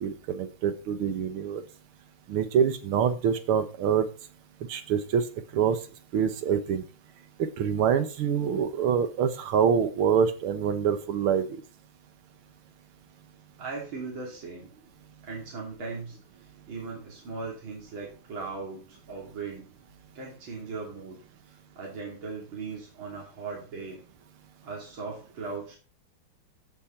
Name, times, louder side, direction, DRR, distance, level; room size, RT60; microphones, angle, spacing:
voice 1, 0.0-1.6 2.3-4.1 4.7-5.3 5.5-5.8 6.1-6.8 7.4-11.5, right 7 dB, 90° right, 10 dB, 2.0 m, -25 dB
voice 2, 13.6-14.7 15.2-19.7 20.1-21.2 21.5-24.0 24.6-25.8, right 4 dB, 70° right, -2 dB, 3.6 m, -38 dB
14.5 x 6.3 x 4.3 m, 0.36 s
omnidirectional pair, 2.3 m